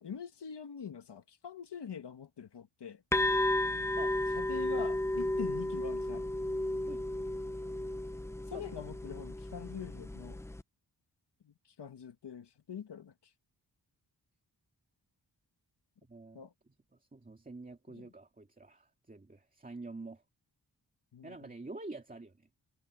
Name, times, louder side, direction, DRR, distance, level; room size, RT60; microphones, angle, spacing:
voice 1, 0.0-3.0 4.4-6.3 8.5-10.4 11.4-13.1 16.3-16.5 17.9-18.1 21.1-21.5, left 7 dB, 90° left, 1.8 m, -44 dB
sound 1, 3.1-10.6, left 1 dB, 5° left, 0.4 m, -33 dB
voice 2, 4.0-4.4 6.9-7.1 8.5-8.7 16.0-16.5 17.1-20.2 21.2-22.5, right 2 dB, 20° right, 2.2 m, -47 dB
wide cardioid pair, 155°, 40 cm